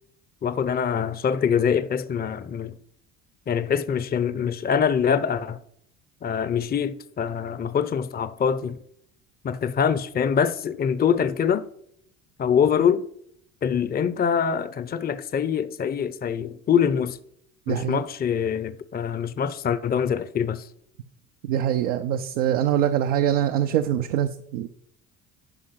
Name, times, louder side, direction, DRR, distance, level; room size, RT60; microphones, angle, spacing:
voice 1, 0.4-2.7 3.5-5.6 6.2-8.8 9.4-11.6 12.4-13.0 13.6-17.2 17.7-20.7, left 7 dB, 25° left, 0.6 m, -24 dB
voice 2, 17.7-18.0 21.4-24.7, right 10 dB, 90° right, 0.6 m, -24 dB
11.0 x 5.1 x 5.7 m
supercardioid pair, 75°, 36 cm